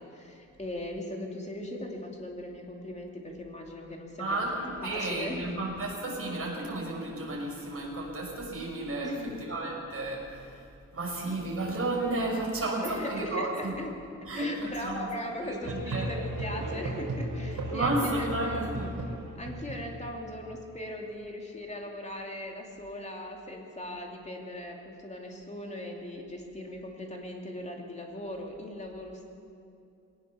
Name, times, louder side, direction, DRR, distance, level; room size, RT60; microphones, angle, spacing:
voice 1, 0.0-4.5 4.8-5.6 9.0-9.4 12.8-14.1 14.3-18.7 19.4-29.2, left 1 dB, 20° left, 0 dB, 2.7 m, -39 dB
voice 2, 4.2-9.1 9.4-10.6 10.9-13.7 14.3-15.1 15.4-16.1 17.7-19.0, right 2 dB, 45° right, -2 dB, 5.6 m, -32 dB
Musical instrument, 15.6-20.4, right 1 dB, 70° right, 4.7 m, -35 dB
20.5 x 18.5 x 7.0 m, 2.6 s
wide cardioid pair, 165°, 31 cm